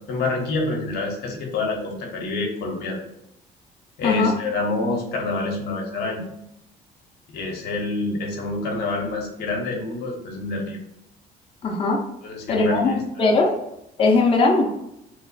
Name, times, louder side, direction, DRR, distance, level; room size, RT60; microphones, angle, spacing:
voice 1, 0.1-3.0 4.0-6.2 7.3-10.8 12.2-13.3, left 3 dB, 70° left, 0 dB, 0.8 m, -27 dB
voice 2, 11.6-12.0 12.5-13.5 14.0-14.7, left 3 dB, 35° left, -1 dB, 0.6 m, -19 dB
3.1 x 2.0 x 3.9 m, 0.82 s
cardioid pair, 110°, 17 cm